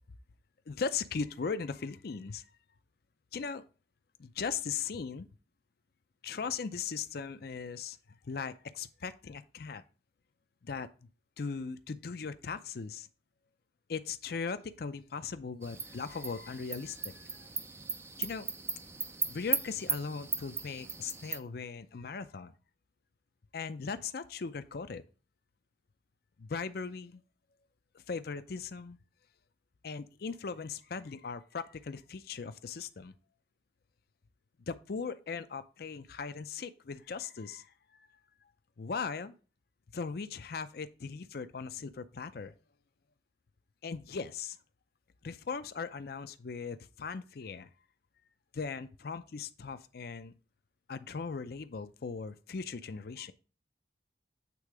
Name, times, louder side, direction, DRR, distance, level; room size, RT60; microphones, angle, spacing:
voice 1, 0.7-2.4 3.3-3.6 4.2-5.3 6.2-8.0 8.2-9.8 10.6-10.9 11.4-13.1 13.9-17.5 18.2-18.5 19.2-22.5 23.5-25.0 26.4-27.2 27.9-29.0 29.8-33.1 34.7-38.2 38.8-39.3 39.9-42.5 43.8-44.6 45.2-47.7 48.5-50.3 50.9-53.3, left 5 dB, 55° left, 0.5 m, -39 dB
sound 1, 15.6-21.4, right 5 dB, 15° right, 0.4 m, -37 dB
8.4 x 3.6 x 4.8 m
head